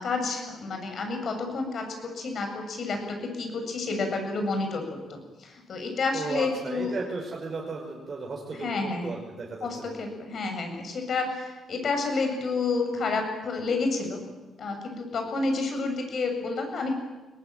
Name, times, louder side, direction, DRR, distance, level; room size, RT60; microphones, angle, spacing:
voice 1, 0.0-4.8 5.1-6.9 8.5-9.2 9.6-14.2 14.6-17.0, left 3 dB, 55° left, 4 dB, 7.8 m, -30 dB
voice 2, 6.1-9.9, right 3 dB, 40° right, -1 dB, 5.7 m, -35 dB
23.0 x 19.5 x 9.2 m, 1.2 s
cardioid pair, 90°, 0 cm